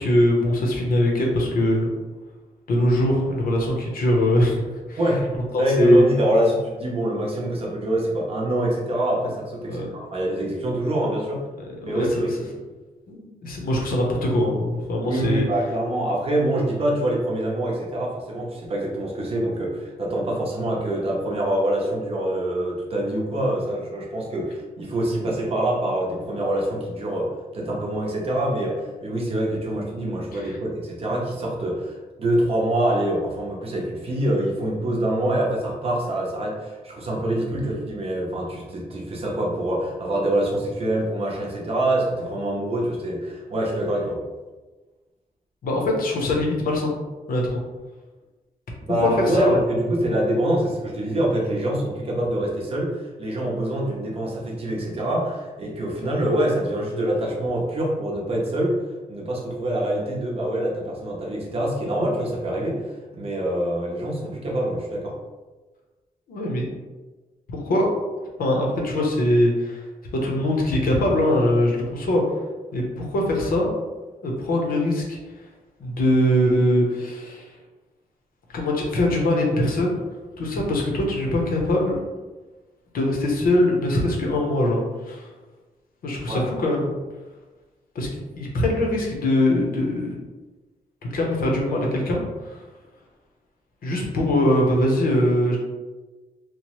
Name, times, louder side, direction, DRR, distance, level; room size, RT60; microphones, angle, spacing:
voice 1, 0.0-1.9 2.7-4.6 4.9-5.0 5.5-6.0 9.7-9.9 11.8-12.2 13.1-15.5 30.3-30.6 45.6-46.9 47.3-47.6 49.0-49.6 66.3-66.7 67.5-67.9 68.4-69.9 70.1-72.2 72.7-73.7 74.2-75.2 75.8-77.5 78.5-80.0 80.4-82.0 82.9-85.3 86.0-86.9 87.9-88.1 88.4-90.2 91.1-92.6 93.8-95.6, left 1 dB, 75° left, -1 dB, 0.7 m, -22 dB
voice 2, 5.0-11.5 11.8-12.6 15.0-44.2 48.9-58.8 59.1-65.2 86.3-86.4, right 1 dB, 40° right, -2 dB, 0.6 m, -25 dB
2.9 x 2.0 x 2.9 m, 1.2 s
wide cardioid pair, 165°, 15 cm